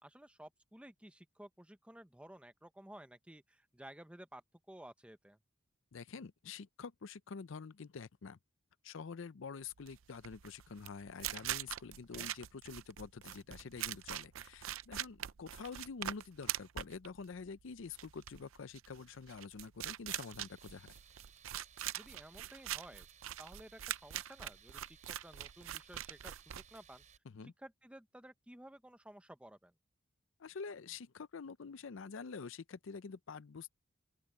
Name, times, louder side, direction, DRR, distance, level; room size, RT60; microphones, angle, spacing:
voice 1, 0.0-4.4 4.7-5.4 12.1-12.3 22.0-23.1 23.4-27.0 27.4-29.7, right 1 dB, 5° right, 0.9 m, -54 dB
voice 2, 5.9-8.4 8.8-21.0 27.3-27.5 30.4-33.7, left 5 dB, 70° left, 0.5 m, -47 dB
sound 1, 9.8-27.2, right 12 dB, 80° right, 0.5 m, -43 dB
Tools, 20.3-27.2, right 8 dB, 35° right, 6.8 m, -62 dB
open air
head